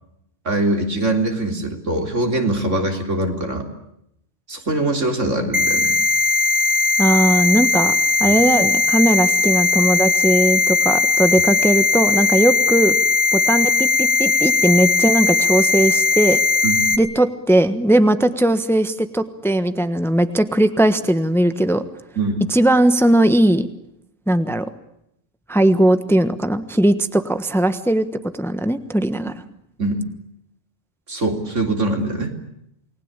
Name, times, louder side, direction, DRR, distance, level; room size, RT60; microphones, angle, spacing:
voice 1, 0.5-3.6 4.5-6.0 8.2-8.4 16.6-16.9 22.2-22.4 29.8-30.0 31.1-32.3, right 2 dB, 75° right, 4 dB, 4.0 m, -22 dB
sound 1, 5.5-17.0, left 5 dB, 25° right, 2.3 m, -18 dB
voice 2, 7.0-7.9 8.2-12.9 13.3-16.4 17.0-21.8 22.5-23.7 24.3-24.6 25.5-28.0 28.3-29.3, right 1 dB, ahead, 10 dB, 1.2 m, -18 dB
29.0 x 20.0 x 9.0 m, 0.78 s
omnidirectional pair, 1.3 m